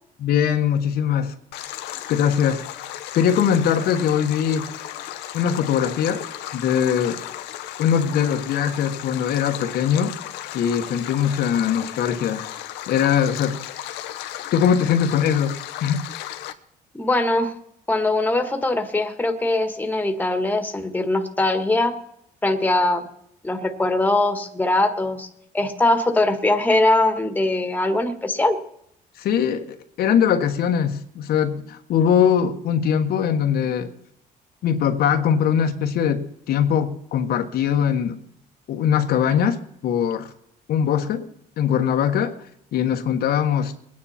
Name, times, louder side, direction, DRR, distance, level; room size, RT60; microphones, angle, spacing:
voice 1, 0.2-1.3 2.1-2.6 3.1-4.7 5.3-6.2 6.5-7.2 7.8-10.1 10.5-12.4 12.9-13.6 14.5-15.5 15.8-16.1 29.2-33.9 34.6-38.2 38.7-40.3 40.7-41.3 41.6-42.4 42.7-43.7, left 8 dB, 65° left, 6 dB, 1.3 m, -21 dB
Stream, 1.5-16.5, left 12 dB, 90° left, 1.0 m, -35 dB
voice 2, 17.0-17.5 17.9-21.9 22.4-23.1 23.4-25.3 25.5-28.6, left 2 dB, 10° left, 7 dB, 1.7 m, -21 dB
22.0 x 9.8 x 4.3 m, 0.74 s
cardioid pair, 110°, 17 cm